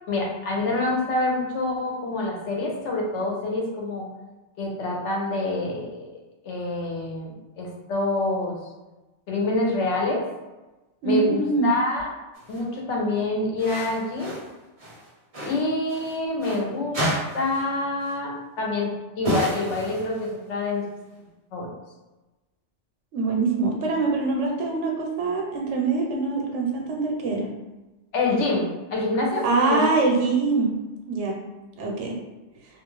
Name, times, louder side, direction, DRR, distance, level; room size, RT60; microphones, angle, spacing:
voice 1, 0.1-4.1 4.6-6.1 6.4-8.6 9.3-10.2 11.0-12.1 12.5-14.4 15.5-17.1 17.3-18.9 19.2-20.8 21.5-21.7 28.1-29.8, left 2 dB, 85° left, -1 dB, 1.0 m, -26 dB
voice 2, 11.0-11.7 23.1-27.5 29.4-30.7 31.1-31.4 31.8-32.2, right 3 dB, 85° right, 1 dB, 1.0 m, -24 dB
sound 1, 12.3-12.6 13.6-14.5 14.8-16.6 16.9-17.7 18.0-18.2 19.2-20.4, right 1 dB, 35° right, 0.7 m, -31 dB
2.4 x 2.4 x 3.0 m, 1.1 s
omnidirectional pair, 1.2 m